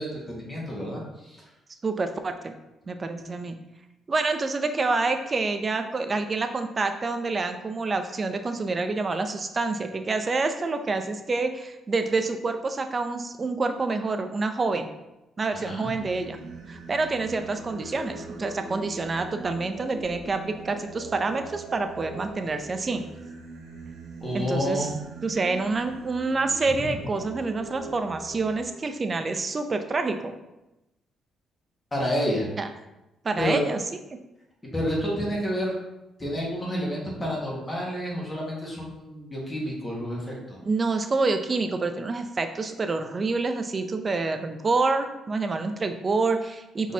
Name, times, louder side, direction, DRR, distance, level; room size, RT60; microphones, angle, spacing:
voice 1, 0.0-1.4 15.5-15.9 24.2-25.0 26.9-27.0 31.9-32.5 33.4-33.6 34.7-35.7 36.2-40.6 46.8-46.9, equal, 25° left, -4 dB, 1.6 m, -29 dB
voice 2, 1.8-2.5 2.9-3.6 4.1-14.9 15.4-16.4 16.7-23.1 24.3-24.9 25.2-30.3 32.6-32.7 33.2-33.8 34.1-34.2 40.6-46.9, right 3 dB, 35° right, 7 dB, 0.5 m, -27 dB
Singing, 15.9-28.6, right 3 dB, 80° right, 0.9 m, -42 dB
4.7 x 4.0 x 2.8 m, 0.95 s
cardioid pair, 90°, 0 cm